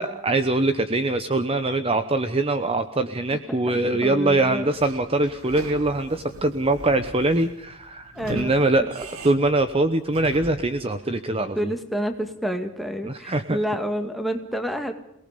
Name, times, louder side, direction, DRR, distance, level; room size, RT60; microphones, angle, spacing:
voice 1, 0.0-11.7 13.0-13.6, right 2 dB, 25° right, 9 dB, 1.0 m, -23 dB
voice 2, 3.5-4.7 8.1-8.9 11.6-14.9, equal, ahead, 5 dB, 2.2 m, -29 dB
Sliding door / Squeak, 4.7-10.8, right 1 dB, 85° right, 3.0 m, -41 dB
28.5 x 19.0 x 5.3 m, 0.77 s
head